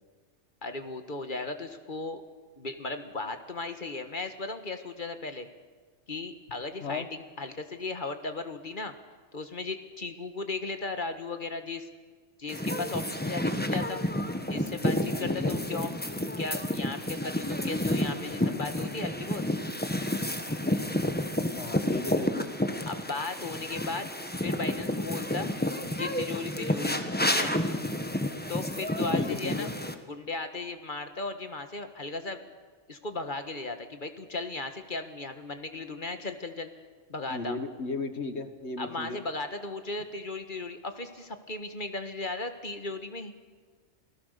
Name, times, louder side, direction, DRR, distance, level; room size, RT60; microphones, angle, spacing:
voice 1, 0.6-2.2 2.6-5.5 6.1-8.9 9.3-11.9 12.4-14.0 14.5-15.9 16.4-19.4 22.8-24.1 24.4-25.5 26.0-27.5 28.5-29.7 30.1-32.4 32.9-36.7 37.1-37.6 38.8-43.5, left 3 dB, 45° left, 8 dB, 1.7 m, -36 dB
sound 1, 12.5-29.9, left 1 dB, 10° left, 1.3 m, -30 dB
voice 2, 15.2-15.6 20.0-20.7 21.6-22.5 23.1-23.2 23.7-23.8 26.9-27.0 29.1-29.7 37.3-39.2, left 3 dB, 65° left, 9 dB, 1.8 m, -36 dB
28.5 x 19.0 x 6.8 m, 1.4 s
omnidirectional pair, 1.2 m